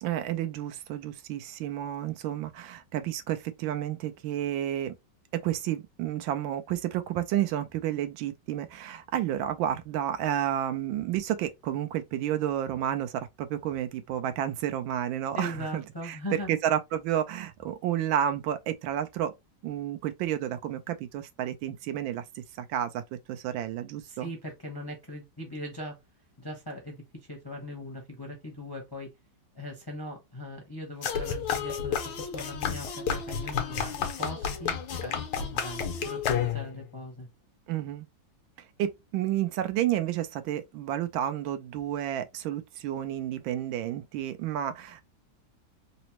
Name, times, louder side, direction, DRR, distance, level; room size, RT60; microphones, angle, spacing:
voice 1, 0.0-4.9 5.3-16.2 16.5-19.3 19.6-24.3 37.7-38.1 38.8-45.0, right 11 dB, 90° right, 1.4 m, -31 dB
voice 2, 15.3-16.6 24.1-26.0 26.4-29.1 29.5-37.3, left 1 dB, 25° left, 0.5 m, -40 dB
sound 1, 31.0-36.8, left 7 dB, 80° left, 1.4 m, -31 dB
4.0 x 2.1 x 2.8 m
omnidirectional pair, 2.1 m